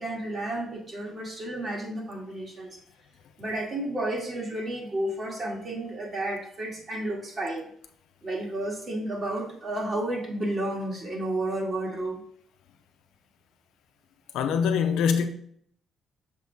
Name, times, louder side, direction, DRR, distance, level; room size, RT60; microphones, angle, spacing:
voice 1, 0.0-2.8 3.4-7.7 8.2-12.2, right 1 dB, 40° right, 2.1 m, -31 dB
voice 2, 14.3-15.3, left 7 dB, 85° left, 0.6 m, -23 dB
6.6 x 4.2 x 3.6 m
cardioid pair, 90°, 0 cm